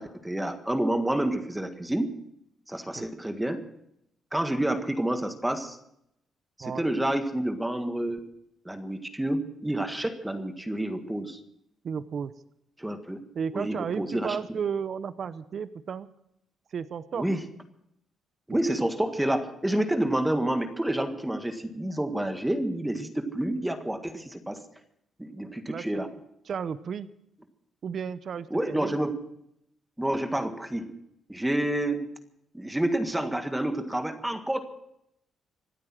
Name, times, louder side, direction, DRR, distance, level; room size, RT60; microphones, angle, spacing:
voice 1, 0.0-2.1 2.7-3.6 4.3-5.8 6.6-8.3 8.6-11.4 12.8-13.2 13.5-14.4 17.1-17.4 18.5-24.6 25.2-26.1 28.5-29.2 30.0-30.9 31.3-32.1 32.5-34.6, right 1 dB, 10° right, 7 dB, 1.7 m, -29 dB
voice 2, 6.6-6.9 11.8-12.3 13.3-16.1 16.7-17.3 18.5-18.6 25.7-26.0 26.4-27.1 27.8-29.0, right 7 dB, 55° right, 14 dB, 0.7 m, -33 dB
25.5 x 8.7 x 6.1 m, 0.78 s
cardioid pair, 90°, 0 cm